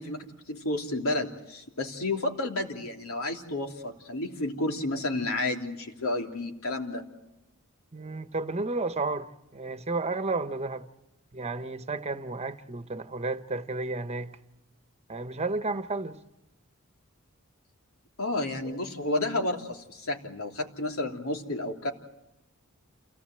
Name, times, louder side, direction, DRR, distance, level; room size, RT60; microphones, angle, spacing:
voice 1, 0.0-7.0 18.2-21.9, left 2 dB, 85° left, 3.1 m, -31 dB
voice 2, 7.9-10.9 11.3-14.3 15.1-16.2, right 3 dB, 30° right, 1.2 m, -32 dB
28.5 x 18.0 x 7.9 m
head